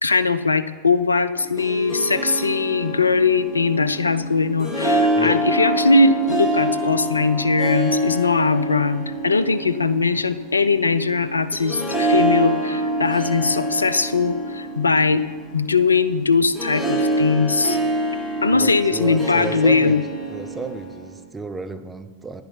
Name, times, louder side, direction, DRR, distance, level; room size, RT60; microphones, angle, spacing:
voice 1, 0.0-15.2 15.5-17.8 18.4-20.0, left 4 dB, 80° left, 14 dB, 0.4 m, -20 dB
Harp, 1.4-21.2, right 1 dB, 5° left, 1.9 m, -26 dB
voice 2, 18.5-20.0 20.3-22.4, right 3 dB, 10° right, 8 dB, 0.6 m, -32 dB
10.5 x 5.6 x 5.7 m, 1.5 s
figure-of-eight pair, 90°, 0 cm